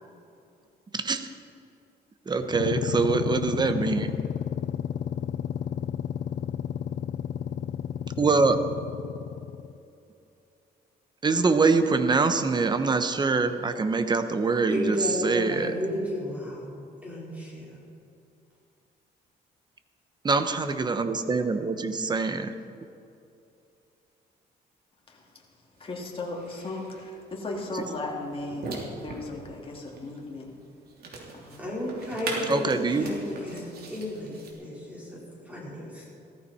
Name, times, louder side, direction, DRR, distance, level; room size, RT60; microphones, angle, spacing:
voice 1, 0.9-1.3 2.3-4.1 8.2-8.6 11.2-15.7 20.2-22.5 27.7-27.8 32.5-33.1, right 4 dB, 25° right, 9 dB, 0.9 m, -24 dB
sound 1, 2.4-9.8, left 9 dB, 50° left, 0.4 m, -32 dB
voice 2, 14.7-16.7 17.0-17.8 31.6-36.0, left 1 dB, 10° right, -6 dB, 4.3 m, -33 dB
voice 3, 25.1-25.4 25.8-30.5 31.3-31.6 32.3-33.1 33.6-33.7, left 2 dB, 30° left, -1 dB, 2.7 m, -37 dB
sound 2, 25.8-34.5, right 3 dB, 65° right, 3.1 m, -41 dB
16.5 x 14.0 x 4.3 m, 2.6 s
cardioid pair, 125°, 17 cm